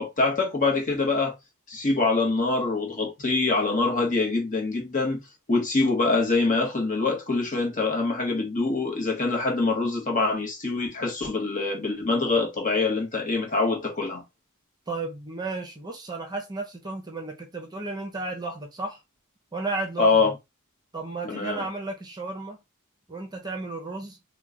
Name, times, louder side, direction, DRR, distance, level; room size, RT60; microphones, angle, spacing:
voice 1, 0.0-1.3 1.7-5.2 5.5-14.2 20.0-20.3 21.2-21.6, left 3 dB, 40° left, 1.1 m, -24 dB
voice 2, 14.9-19.0 19.5-20.3 20.9-22.6 23.1-24.2, right 3 dB, 20° right, 0.7 m, -33 dB
3.0 x 2.3 x 3.7 m
head